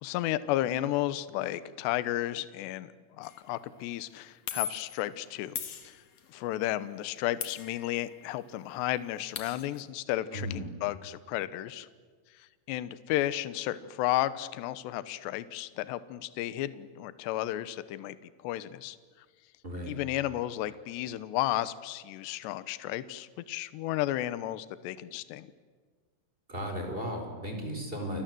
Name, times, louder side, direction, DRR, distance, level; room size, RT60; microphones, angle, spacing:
voice 1, 0.0-5.6 5.8-6.0 6.3-11.9 12.3-18.2 18.4-19.0 19.9-25.5, left 14 dB, 75° left, 15 dB, 2.9 m, -33 dB
sound 1, 3.2-3.5 4.5-5.0 5.6-6.4 7.4-8.3 8.6-8.7 8.9-9.8, left 8 dB, 50° left, 2.2 m, -39 dB
voice 2, 10.3-10.7 19.6-20.0 26.5-28.2, equal, 10° right, 3 dB, 4.5 m, -35 dB
29.5 x 23.5 x 7.8 m, 1.5 s
omnidirectional pair, 5.6 m